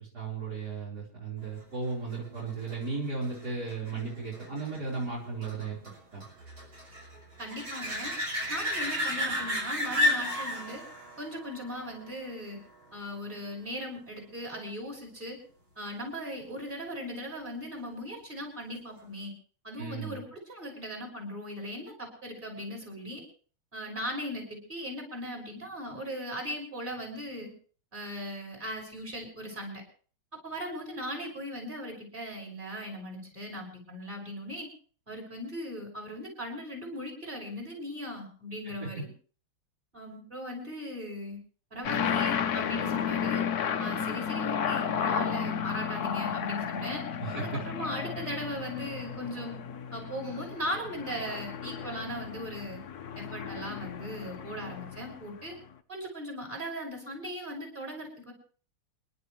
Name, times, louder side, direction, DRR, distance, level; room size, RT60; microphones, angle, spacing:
voice 1, 0.0-5.8 6.1-6.2 19.8-20.2 38.8-38.9 47.2-47.6, right 4 dB, 45° right, -4 dB, 5.0 m, -35 dB
sound 1, 1.8-13.1 18.8-18.9, left 1 dB, 75° right, 7.4 m, -34 dB
voice 2, 7.4-8.1 8.5-10.8 11.2-12.6 12.9-15.4 15.8-19.3 19.6-23.2 23.7-27.5 27.9-29.8 30.4-34.7 35.1-39.1 39.9-41.4 41.7-43.4 43.8-47.0 47.4-49.6 49.9-52.8 53.2-55.5 55.9-58.3, equal, 20° right, 0 dB, 6.2 m, -38 dB
Two Spitfires Flyby, 41.8-55.5, left 7 dB, 55° left, 1.2 m, -33 dB
28.5 x 11.5 x 3.2 m, 0.42 s
omnidirectional pair, 2.3 m